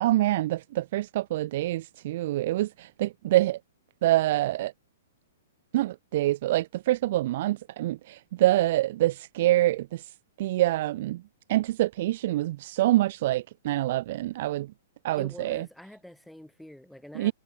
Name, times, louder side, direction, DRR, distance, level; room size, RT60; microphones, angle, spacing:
voice 1, 0.0-3.6 4.0-4.7 5.7-10.0 10.4-11.2 11.5-14.7 15.0-15.7 17.1-17.3, right 15 dB, 50° right, 0.6 m, -26 dB
voice 2, 15.2-17.3, left 1 dB, ahead, 2.7 m, -46 dB
hypercardioid pair, 145°, 0 cm